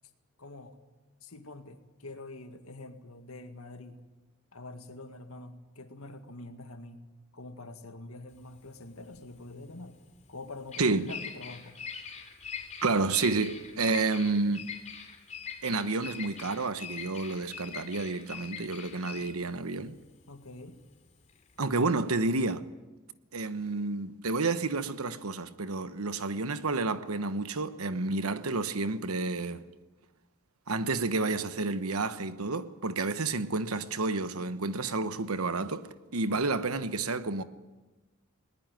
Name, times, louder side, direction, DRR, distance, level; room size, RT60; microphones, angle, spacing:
voice 1, 0.4-0.8 1.2-4.0 4.5-7.1 7.3-10.0 10.3-11.8 20.3-20.8, left 2 dB, 80° left, 2.0 m, -45 dB
Bird vocalization bird call bird song, 8.3-21.6, left 7 dB, 35° left, 3.0 m, -43 dB
voice 2, 10.8-11.1 12.8-14.7 15.6-20.0 21.6-22.6 23.3-29.6 30.7-37.4, right 3 dB, 85° right, 1.1 m, -30 dB
20.0 x 20.0 x 9.1 m
head